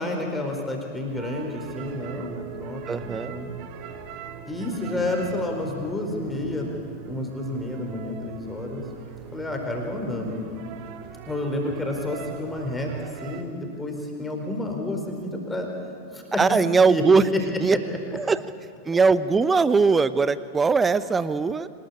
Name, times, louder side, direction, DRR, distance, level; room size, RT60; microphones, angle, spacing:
voice 1, 0.0-3.5 4.5-6.7 7.0-8.8 9.3-10.5 11.3-15.7 16.1-16.4 16.9-17.0 17.3-17.4, left 2 dB, 10° left, 2 dB, 4.5 m, -30 dB
sound 1, 1.1-13.4, right 8 dB, 45° right, 2.0 m, -40 dB
voice 2, 2.9-3.4 16.4-17.8 18.1-18.4 18.8-21.7, right 4 dB, 15° right, 16 dB, 0.8 m, -20 dB
25.5 x 20.0 x 8.6 m, 2.2 s
figure-of-eight pair, 90°, 0 cm